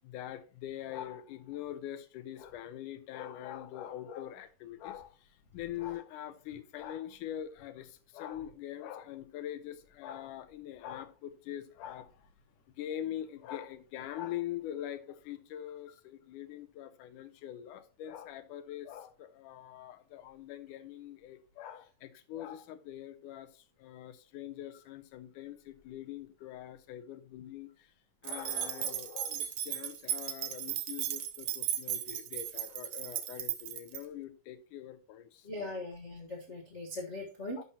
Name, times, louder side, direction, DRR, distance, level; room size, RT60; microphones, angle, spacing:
voice 1, 0.0-12.3 12.7-27.9 28.2-35.9 37.6-37.7, left 11 dB, 85° left, 2.2 m, -43 dB
sound 1, 28.2-34.0, right 10 dB, 75° right, 2.2 m, -36 dB
voice 2, 35.4-37.6, left 1 dB, 70° left, 0.6 m, -40 dB
11.0 x 6.0 x 2.8 m
omnidirectional pair, 3.6 m